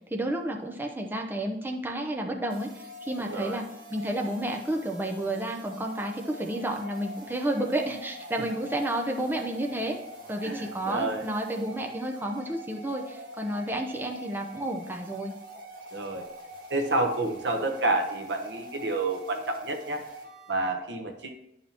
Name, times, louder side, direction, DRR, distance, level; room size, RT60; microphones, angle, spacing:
voice 1, 0.1-3.6 3.9-10.0 10.3-15.3, right 1 dB, 10° right, 1 dB, 0.7 m, -31 dB
sound 1, 2.5-20.7, right 1 dB, 55° right, 1.6 m, -45 dB
voice 2, 3.3-3.6 10.4-11.2 15.9-16.3 16.7-20.0 20.5-21.3, right 2 dB, 90° right, 5 dB, 1.0 m, -29 dB
10.5 x 5.3 x 3.0 m, 0.82 s
head